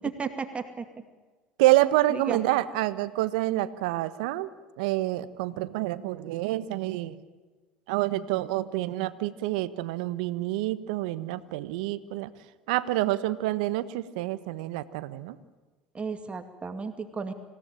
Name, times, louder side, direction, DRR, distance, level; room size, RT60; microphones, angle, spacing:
voice 1, 0.0-0.9 2.1-2.4 15.9-17.3, right 5 dB, 25° right, 7 dB, 2.4 m, -34 dB
voice 2, 1.6-4.5 4.8-7.2 7.9-12.3 12.7-15.4, right 16 dB, 70° right, 13 dB, 1.3 m, -27 dB
27.0 x 17.5 x 9.1 m, 1.3 s
hypercardioid pair, 75°, 4 cm